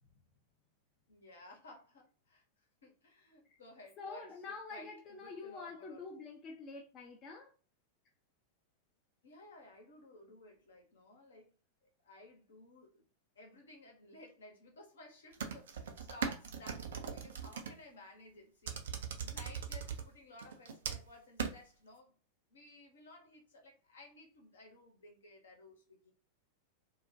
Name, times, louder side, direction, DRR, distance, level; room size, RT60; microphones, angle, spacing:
voice 1, 1.1-2.4 2.8-6.1 9.2-11.5 11.8-13.0 13.3-22.2 22.5-26.1, left 2 dB, 65° left, 0.8 m, -56 dB
voice 2, 4.0-7.5, left 4 dB, 30° left, 0.5 m, -47 dB
sound 1, 15.3-17.7 18.7-20.0 20.4-21.1 21.4-21.5, right 7 dB, 60° right, 0.4 m, -39 dB
2.3 x 2.1 x 2.6 m
figure-of-eight pair, 90°, 0 cm